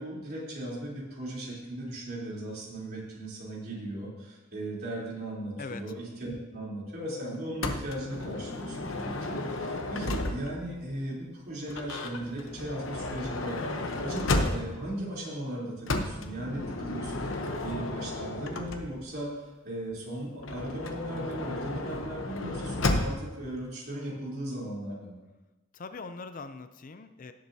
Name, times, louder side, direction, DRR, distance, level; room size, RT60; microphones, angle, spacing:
voice 1, 0.0-19.3 19.6-25.2, right 1 dB, 50° right, -5 dB, 3.5 m, -37 dB
Motor vehicle (road) / Sliding door, 7.6-10.7 11.7-14.9 15.9-19.2 20.4-23.4, left 2 dB, 80° left, 0.9 m, -33 dB
voice 2, 25.7-27.3, left 4 dB, 40° left, 9 dB, 0.5 m, -41 dB
17.5 x 7.7 x 2.8 m, 1.1 s
head